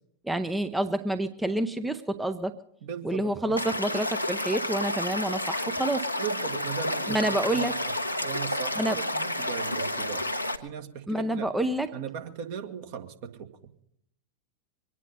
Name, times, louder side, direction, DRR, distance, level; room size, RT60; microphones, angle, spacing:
voice 1, 0.2-2.6 3.0-6.1 7.1-7.8 8.8-9.0 11.1-11.9, right 1 dB, 5° right, 9 dB, 0.7 m, -28 dB
voice 2, 2.8-3.6 6.2-7.9 8.2-10.3 10.6-11.5 11.9-13.5, right 8 dB, 50° right, 4 dB, 1.8 m, -38 dB
Stream / Liquid, 3.6-10.6, left 1 dB, 90° left, 1.0 m, -30 dB
24.0 x 9.7 x 5.4 m, 0.70 s
figure-of-eight pair, 90°, 0 cm